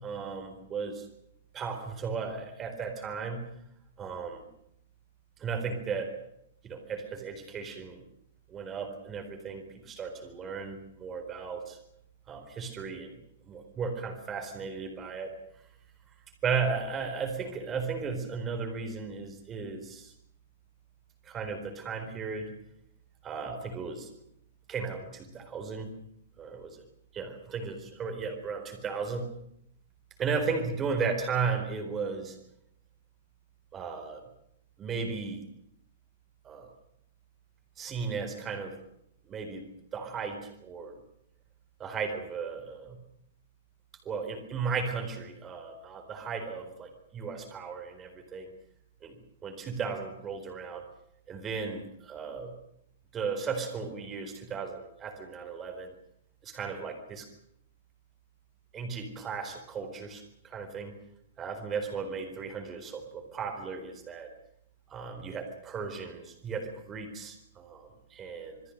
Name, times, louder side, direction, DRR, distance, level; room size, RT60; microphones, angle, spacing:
voice 1, 0.0-1.1 1.5-3.5 4.0-4.4 5.4-6.2 6.6-8.0 8.5-11.8 12.3-13.2 13.4-15.3 16.4-20.1 21.2-22.5 23.2-24.1 24.7-25.9 26.4-26.8 27.1-29.3 30.2-32.4 33.7-34.2 34.8-35.4 36.4-36.7 37.8-38.8 39.3-41.0 41.8-43.0 44.0-48.5 49.0-50.9 51.3-52.5 53.1-55.9 56.4-57.3 58.7-60.9 61.4-64.3 64.9-68.6, right 5 dB, 15° right, 5 dB, 4.2 m, -35 dB
27.5 x 21.0 x 6.6 m, 0.75 s
hypercardioid pair, 170°, 0 cm